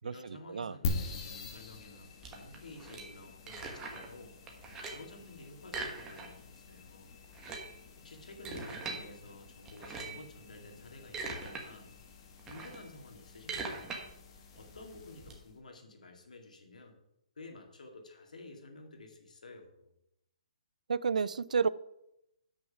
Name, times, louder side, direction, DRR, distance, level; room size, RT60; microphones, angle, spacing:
voice 1, 0.0-4.4 4.8-7.1 8.0-11.9 12.4-14.0 14.6-17.0 17.4-19.9, left 2 dB, 90° left, 3 dB, 2.1 m, -51 dB
sound 1, 0.8-15.6, left 4 dB, 35° left, 1.3 m, -45 dB
sound 2, 2.2-4.2 4.5-5.1 5.6-6.6 6.8-6.9 7.2-9.0 9.7-10.3 10.8-11.6 12.0-15.3, right 3 dB, 15° right, 1.2 m, -42 dB
voice 2, 20.9-21.7, right 5 dB, 90° right, 19 dB, 0.4 m, -30 dB
7.2 x 6.2 x 5.7 m, 0.84 s
hypercardioid pair, 160°, 4 cm